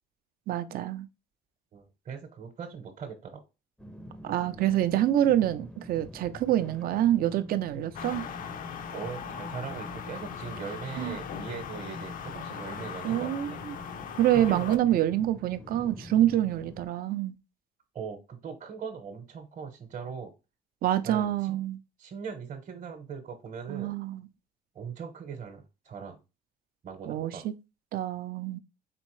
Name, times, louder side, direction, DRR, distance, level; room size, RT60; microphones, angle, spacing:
voice 1, 0.5-1.1 4.2-8.2 11.0-11.2 13.0-13.8 14.2-17.3 20.8-21.8 23.7-24.3 27.0-27.5 27.9-28.6, right 12 dB, 60° right, 0.5 m, -26 dB
voice 2, 1.7-3.4 8.9-13.6 14.3-14.8 17.9-20.3 21.0-21.3 22.0-23.9 24.7-26.2 26.8-27.4, right 6 dB, 45° right, 0.9 m, -40 dB
sound 1, 3.8-16.9, left 1 dB, 5° left, 0.5 m, -46 dB
sound 2, 7.9-14.8, left 8 dB, 55° left, 0.5 m, -39 dB
4.2 x 3.6 x 3.1 m
cardioid pair, 110°, 17 cm